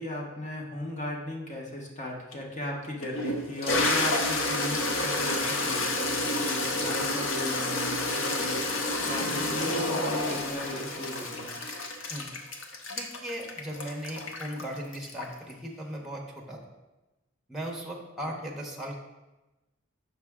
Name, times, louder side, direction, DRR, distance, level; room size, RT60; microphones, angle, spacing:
voice 1, 0.0-11.6 18.2-18.4, left 1 dB, 35° left, -1 dB, 0.9 m, -36 dB
Toilet flush, 2.3-2.4 3.0-15.5, left 2 dB, 65° left, 0.7 m, -29 dB
voice 2, 12.9-16.6 17.5-19.0, equal, ahead, -1 dB, 0.8 m, -37 dB
5.7 x 5.7 x 3.5 m, 1.1 s
head